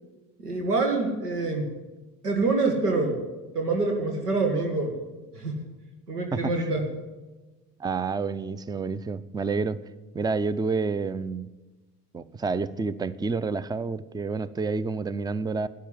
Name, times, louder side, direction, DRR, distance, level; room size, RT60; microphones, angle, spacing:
voice 1, 0.4-1.7 2.2-3.2 3.5-4.9 5.3-5.6 6.1-6.8, right 3 dB, 85° right, 1.9 m, -26 dB
voice 2, 7.8-9.8 10.1-11.5 12.1-15.7, right 4 dB, 10° right, 0.6 m, -29 dB
13.0 x 10.5 x 9.8 m
figure-of-eight pair, 60°, 45 cm